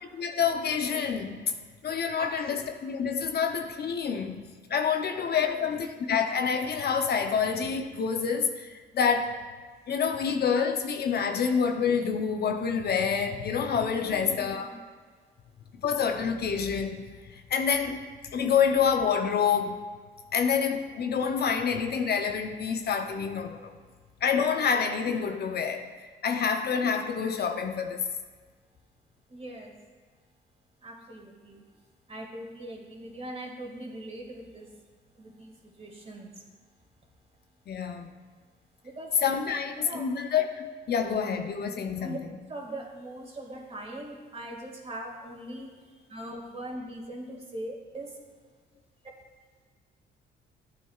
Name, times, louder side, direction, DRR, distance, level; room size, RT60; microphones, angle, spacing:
voice 1, 0.1-1.4 1.8-4.4 4.7-9.4 9.9-14.7 15.8-18.0 18.3-19.9 20.3-23.7 24.2-25.9 26.2-28.1 37.7-38.1 39.2-42.2, left 6 dB, 55° left, 0.7 m, -27 dB
voice 2, 2.2-2.6 5.0-5.7 14.0-14.7 29.3-29.7 30.8-31.6 32.1-34.7 35.2-36.4 38.8-39.1 39.5-40.1 42.0-42.2 42.5-48.2, right 1 dB, 30° right, 2.0 m, -41 dB
12.0 x 8.5 x 2.4 m
cardioid pair, 90°, 20 cm